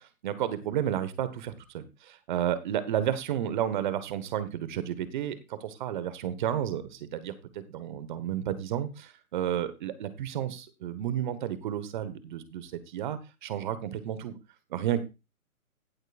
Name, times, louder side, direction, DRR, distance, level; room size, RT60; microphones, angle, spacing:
voice 1, 0.2-14.3 14.7-15.0, right 10 dB, 35° right, 14 dB, 1.3 m, -32 dB
16.0 x 8.1 x 2.4 m, 0.27 s
hypercardioid pair, 140°, 42 cm